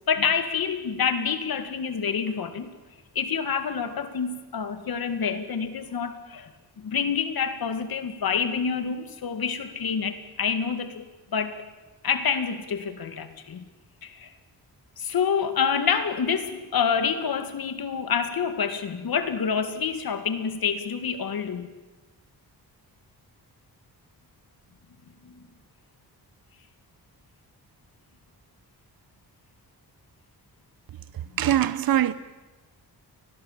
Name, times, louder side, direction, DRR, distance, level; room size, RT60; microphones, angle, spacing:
voice 1, 0.1-2.7 3.1-6.5 6.8-11.1 11.3-11.6 12.0-13.6 14.0-14.3 15.0-21.7 25.2-25.4, left 6 dB, 65° left, 2.3 m, -27 dB
voice 2, 31.4-32.1, right 11 dB, 60° right, 0.8 m, -22 dB
29.5 x 21.0 x 7.5 m
wide cardioid pair, 175°, 39 cm